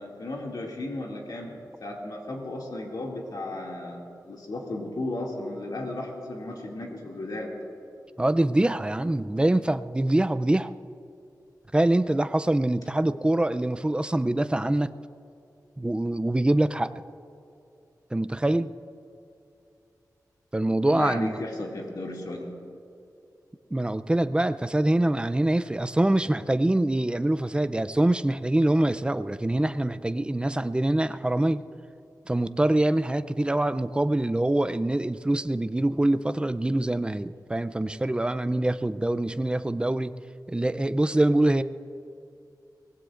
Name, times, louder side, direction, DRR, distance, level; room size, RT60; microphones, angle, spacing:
voice 1, 0.0-1.5 1.8-7.5 20.8-22.5, left 2 dB, 80° left, -2 dB, 2.4 m, -35 dB
voice 2, 8.2-10.7 11.7-14.9 15.8-16.9 18.1-18.7 20.5-21.4 23.7-31.6 32.3-40.1 40.5-41.6, right 1 dB, 15° right, 11 dB, 0.5 m, -24 dB
24.5 x 19.5 x 2.5 m, 2.6 s
wide cardioid pair, 100°, 7 cm